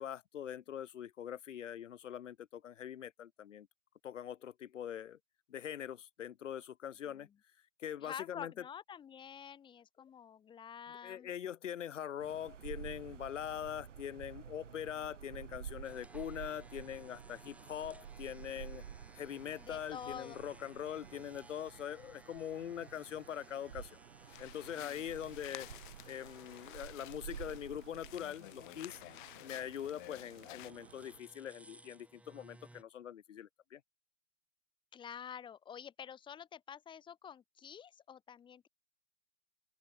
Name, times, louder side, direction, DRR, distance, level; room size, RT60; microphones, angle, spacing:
voice 1, 0.0-3.7 4.0-5.2 5.5-7.3 7.8-8.5 10.0-10.1 11.0-18.8 19.2-24.0 24.4-25.7 26.1-29.0 29.4-33.8, left 10 dB, 85° left, 0.8 m, -43 dB
voice 2, 7.1-7.4 8.0-11.3 19.6-20.4 24.8-25.2 34.9-38.7, left 8 dB, 15° left, 1.1 m, -48 dB
sound 1, 12.2-31.2, right 8 dB, 80° right, 2.1 m, -51 dB
sound 2, 15.8-32.8, right 2 dB, 5° right, 6.2 m, -62 dB
sound 3, 24.3-30.7, left 20 dB, 40° left, 1.2 m, -52 dB
open air
hypercardioid pair, 125°, 37 cm